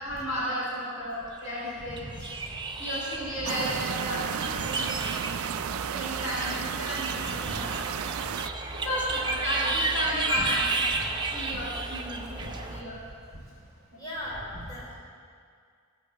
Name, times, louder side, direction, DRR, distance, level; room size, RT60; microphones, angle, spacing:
voice 1, 0.0-2.3 2.8-5.0 5.9-7.8 8.7-10.8 11.2-13.0 13.9-14.0, equal, 65° left, -10 dB, 3.7 m, -33 dB
sound 1, 1.7-12.8, right 3 dB, 20° right, 0.7 m, -32 dB
sound 2, 3.5-8.5, right 9 dB, 80° right, 0.4 m, -33 dB
voice 2, 14.0-14.9, left 1 dB, 15° left, -7 dB, 3.2 m, -37 dB
16.0 x 5.5 x 7.0 m, 2.1 s
head